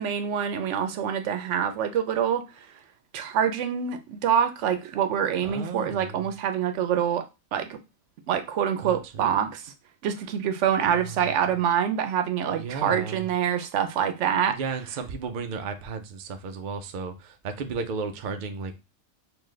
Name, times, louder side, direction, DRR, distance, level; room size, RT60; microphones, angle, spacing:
voice 1, 0.0-2.7 3.1-7.2 7.5-7.8 8.3-9.7 10.0-14.6, right 8 dB, 90° right, 0.9 m, -26 dB
voice 2, 5.4-6.3 8.8-9.0 11.0-11.3 12.5-13.3 14.5-18.8, right 5 dB, 55° right, 0.6 m, -34 dB
3.8 x 2.6 x 3.1 m
omnidirectional pair, 1.2 m